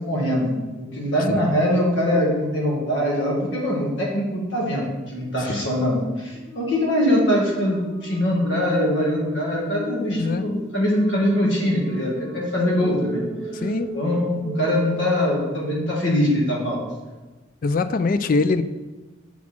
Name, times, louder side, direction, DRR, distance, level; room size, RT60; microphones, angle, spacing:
voice 1, 0.0-13.2 13.9-16.8, equal, 75° left, -3 dB, 1.9 m, -22 dB
sound 1, 6.3-15.7, left 1 dB, 5° right, 1.8 m, -36 dB
voice 2, 10.1-10.5 13.5-13.9 17.6-18.6, left 3 dB, 45° left, 12 dB, 0.3 m, -23 dB
7.1 x 4.3 x 4.3 m, 1.2 s
head